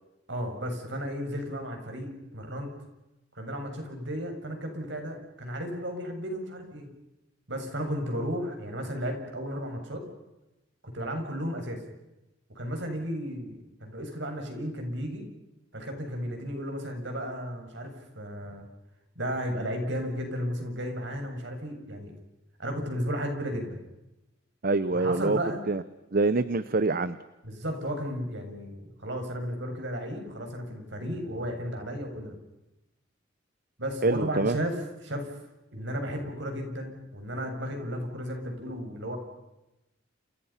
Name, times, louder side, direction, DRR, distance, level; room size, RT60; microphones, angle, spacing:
voice 1, 0.3-2.8 3.4-6.9 7.5-10.0 10.8-11.8 12.6-15.2 15.7-18.7 19.2-22.1 22.6-23.8 24.9-25.6 27.4-32.4 33.8-35.3 35.7-39.2, equal, 65° right, 4 dB, 7.0 m, -34 dB
voice 2, 24.6-25.4 25.7-25.8 26.1-27.2 34.0-34.6, right 3 dB, 50° right, 14 dB, 0.9 m, -25 dB
30.0 x 29.0 x 5.8 m, 0.96 s
head